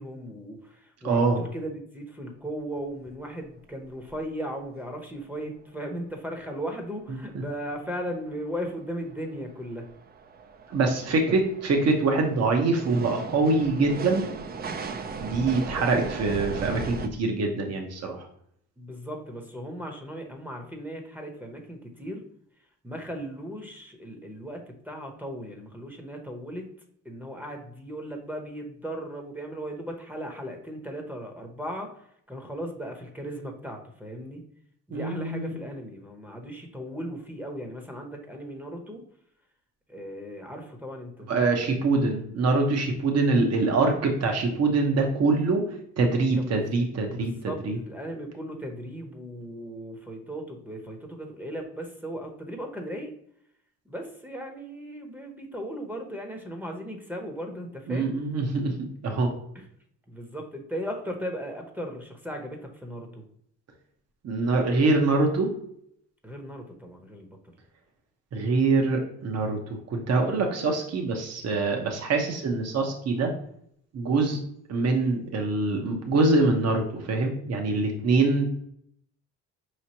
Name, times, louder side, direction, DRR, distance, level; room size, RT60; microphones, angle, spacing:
voice 1, 0.0-9.9 11.3-11.4 18.8-22.3 22.8-26.7 27.0-34.4 34.9-39.0 39.9-41.3 46.4-46.7 47.0-53.1 53.8-58.2 58.5-58.6 59.5-59.6 60.1-63.2 66.2-67.4, equal, 5° right, 3 dB, 0.8 m, -37 dB
voice 2, 1.0-1.4 10.7-14.2 15.2-18.2 34.9-35.5 41.3-45.6 46.0-47.3 47.6-47.8 57.9-59.3 64.2-65.5 68.3-69.6 69.9-73.3 73.9-74.4 74.7-78.5, right 3 dB, 55° right, 2 dB, 1.0 m, -24 dB
sound 1, 2.8-2.9 3.1-3.2 3.4-3.7 4.1-4.2 7.2-7.3 7.9-17.1, right 4 dB, 30° right, 0.4 m, -37 dB
5.0 x 3.1 x 2.8 m, 0.69 s
cardioid pair, 90°, 30 cm